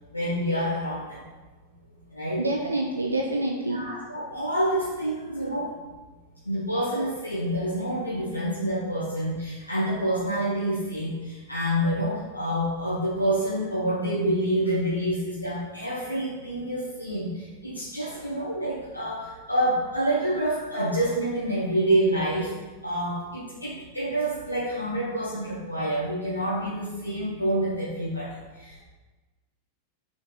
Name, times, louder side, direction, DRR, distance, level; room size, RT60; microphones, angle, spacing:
voice 1, 0.1-1.2 2.1-2.4 3.7-5.7 6.4-22.5 22.8-28.8, right 1 dB, 85° left, -8 dB, 1.2 m, -27 dB
voice 2, 2.4-3.8 18.1-18.3, right 2 dB, 80° right, 1 dB, 0.5 m, -27 dB
5.7 x 4.5 x 3.7 m, 1.2 s
figure-of-eight pair, 90°, 0 cm